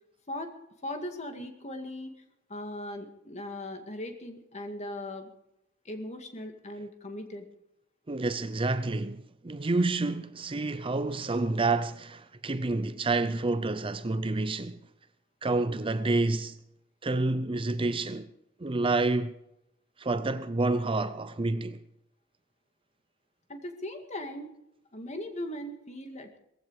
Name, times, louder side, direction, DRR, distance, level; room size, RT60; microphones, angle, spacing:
voice 1, 0.8-2.1 2.5-5.3 5.8-7.5 23.5-24.5 24.9-26.4, left 1 dB, 35° left, 2.1 m, -38 dB
voice 2, 8.1-14.8 15.4-16.6 17.0-18.3 18.6-19.4 20.0-21.8, right 2 dB, 25° right, 0.6 m, -29 dB
18.0 x 15.5 x 4.8 m
head